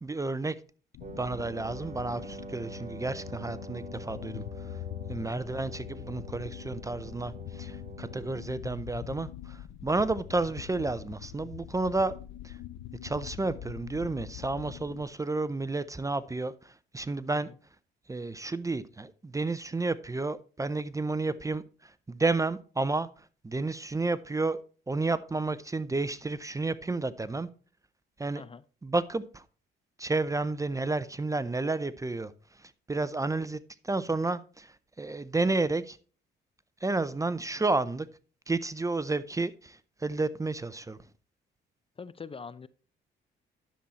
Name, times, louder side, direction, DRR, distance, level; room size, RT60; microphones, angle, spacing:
voice 1, 0.0-0.6 1.2-4.8 5.1-12.1 12.4-12.6 13.0-17.5 18.1-24.6 24.9-27.5 28.2-28.4 28.8-29.4 30.0-36.0 36.8-38.1 38.5-41.0, right 3 dB, 15° right, 0.5 m, -31 dB
sound 1, 0.9-15.0, left 13 dB, 85° left, 0.6 m, -43 dB
Wind instrument woodwind instrument, 1.0-8.6, right 5 dB, 35° right, 1.0 m, -46 dB
voice 2, 42.0-42.7, left 5 dB, 30° left, 0.5 m, -44 dB
10.0 x 7.1 x 4.1 m
cardioid pair, 90°, 20 cm